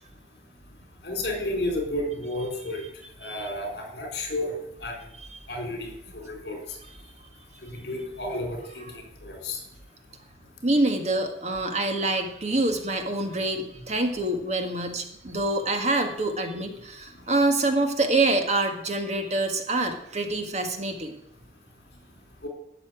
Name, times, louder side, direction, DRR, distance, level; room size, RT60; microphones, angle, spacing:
voice 1, 1.0-2.9 3.2-4.5 4.8-4.9 5.5-6.6 7.6-9.6 22.4-22.5, left 1 dB, 60° left, 2 dB, 4.1 m, -32 dB
voice 2, 10.6-21.1, right 2 dB, 40° right, 5 dB, 1.6 m, -26 dB
12.5 x 7.0 x 9.3 m, 0.76 s
head